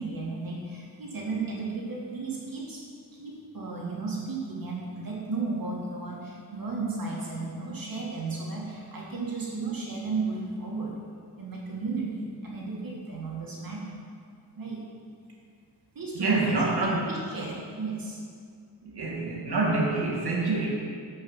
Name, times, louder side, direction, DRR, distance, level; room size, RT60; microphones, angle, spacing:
voice 1, 0.0-11.0 11.4-14.0 14.6-14.8 15.9-18.2, right 4 dB, 60° right, -4 dB, 2.3 m, -34 dB
voice 2, 16.1-17.0 18.8-20.7, right 2 dB, 75° right, -2 dB, 2.1 m, -27 dB
12.0 x 5.6 x 5.6 m, 2.2 s
wide cardioid pair, 155°, 39 cm